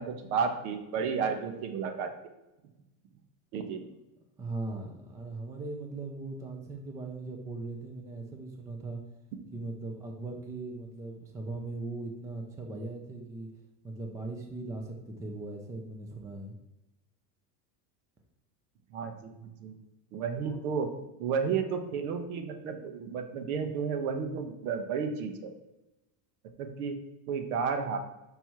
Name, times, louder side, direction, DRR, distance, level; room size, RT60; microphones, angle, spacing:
voice 1, 0.0-2.1 3.5-3.8 18.9-19.7 20.1-20.9 21.2-25.5 26.6-26.9 27.3-28.0, right 6 dB, 70° right, 6 dB, 1.1 m, -32 dB
voice 2, 4.4-9.0 9.5-13.5 13.8-16.5 20.4-20.6, right 2 dB, 5° right, 2 dB, 0.4 m, -39 dB
6.0 x 5.5 x 4.6 m, 0.97 s
supercardioid pair, 155°, 45 cm